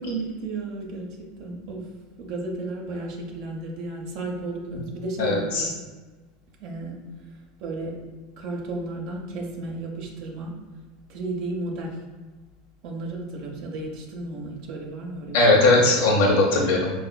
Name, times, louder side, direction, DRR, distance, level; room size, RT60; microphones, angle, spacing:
voice 1, 0.0-1.9 2.2-5.7 6.6-7.0 7.6-8.0 8.4-10.6 11.1-12.0 12.8-15.4, right 2 dB, 60° right, 0 dB, 0.6 m, -33 dB
voice 2, 5.2-5.7 15.3-16.9, left 2 dB, 70° left, -1 dB, 0.7 m, -19 dB
4.1 x 2.4 x 2.2 m, 1.3 s
supercardioid pair, 120°, 0 cm